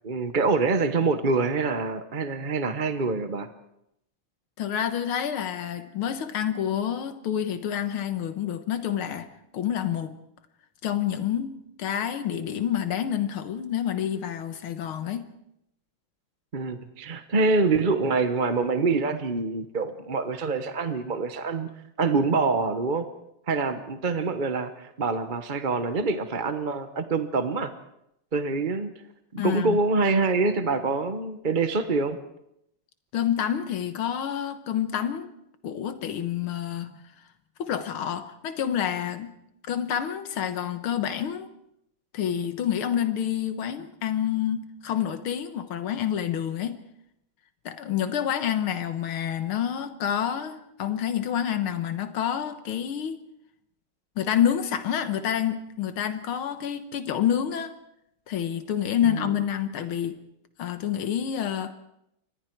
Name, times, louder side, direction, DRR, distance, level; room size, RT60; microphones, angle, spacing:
voice 1, 0.0-3.5 16.5-21.7 22.0-23.1 23.5-27.7 28.3-28.9 29.3-32.2 59.0-59.3, right 3 dB, 35° right, 9 dB, 0.9 m, -25 dB
voice 2, 4.6-9.3 9.5-10.1 10.8-15.2 29.4-29.8 33.1-35.3 35.6-37.0 37.6-39.3 39.7-41.5 42.1-46.8 47.7-53.2 54.2-57.7 58.3-60.2 60.6-61.7, left 9 dB, 90° left, 9 dB, 2.1 m, -28 dB
29.5 x 24.5 x 4.6 m, 0.79 s
omnidirectional pair, 2.3 m